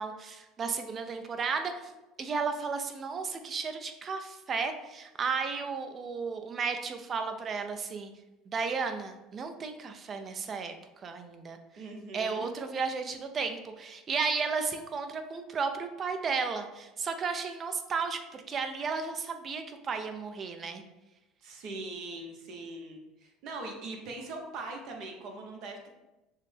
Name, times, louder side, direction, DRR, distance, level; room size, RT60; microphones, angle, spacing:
voice 1, 0.0-1.9 2.2-8.1 8.5-10.7 11.0-11.6 12.1-20.8, right 5 dB, 35° right, 7 dB, 0.5 m, -33 dB
voice 2, 11.8-12.5 21.4-25.9, right 2 dB, 60° right, 2 dB, 1.0 m, -41 dB
6.5 x 2.2 x 3.4 m, 1.0 s
supercardioid pair, 105°, 0 cm